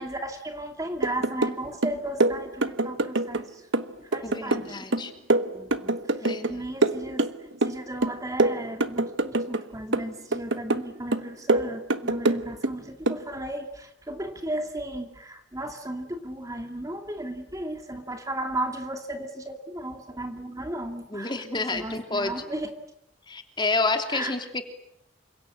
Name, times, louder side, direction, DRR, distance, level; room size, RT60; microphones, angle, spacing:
voice 1, 0.0-3.6 4.1-5.1 5.5-7.3 7.6-22.7 24.1-24.3, right 1 dB, 15° right, 5 dB, 2.5 m, -35 dB
sound 1, 1.0-1.6 1.8-3.4 3.7-6.5 6.8-7.8 8.0-9.6 9.9-10.9 11.1-12.7 13.1-13.2, right 2 dB, 70° right, 1.3 m, -25 dB
voice 2, 4.2-5.1 6.2-6.6 21.1-22.4 23.3-24.7, left 3 dB, 25° left, 6 dB, 3.2 m, -29 dB
29.5 x 26.5 x 7.6 m, 0.73 s
head